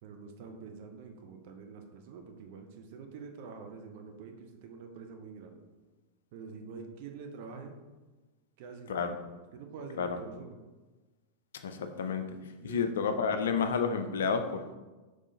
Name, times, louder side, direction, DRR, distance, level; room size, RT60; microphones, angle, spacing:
voice 1, 0.0-5.6 6.3-7.7 8.6-9.1 9.5-10.6 12.6-13.5, right 5 dB, 50° right, 4 dB, 0.6 m, -46 dB
voice 2, 11.6-12.4 12.6-14.8, left 6 dB, 60° left, 8 dB, 0.3 m, -30 dB
3.6 x 3.2 x 3.7 m, 1.2 s
figure-of-eight pair, 90°, 0 cm